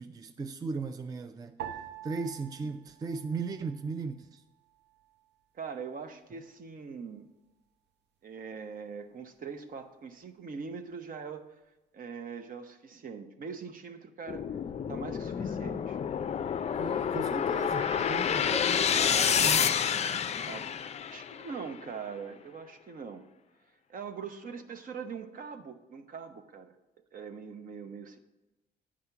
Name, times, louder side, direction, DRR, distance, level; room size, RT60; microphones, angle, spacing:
voice 1, 0.0-1.6 2.0-4.4 16.8-19.7, right 4 dB, 20° right, 8 dB, 0.4 m, -37 dB
sound 1, 1.6-4.1 4.4-5.3 5.9-6.3, right 9 dB, 85° right, 0.8 m, -46 dB
voice 2, 5.5-7.3 8.2-11.4 11.9-14.4 14.9-16.0 20.4-20.7 21.1-23.2 23.9-26.7 27.1-28.2, right 6 dB, 55° right, 8 dB, 0.9 m, -42 dB
sound 2, 14.3-21.5, left 8 dB, 40° left, 0.4 m, -29 dB
9.5 x 5.0 x 5.7 m, 1.0 s
cardioid pair, 100°, 17 cm